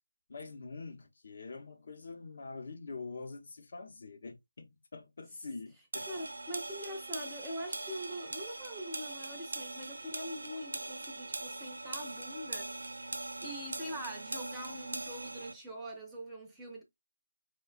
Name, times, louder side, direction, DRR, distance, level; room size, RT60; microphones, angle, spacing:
voice 1, 0.3-6.1, left 4 dB, 50° left, 0.7 m, -45 dB
sound 1, 5.9-15.5, right 2 dB, 70° right, 0.6 m, -41 dB
voice 2, 6.1-12.9 13.4-16.8, equal, 5° right, 0.5 m, -43 dB
4.7 x 2.2 x 2.3 m
figure-of-eight pair, 160°, 0 cm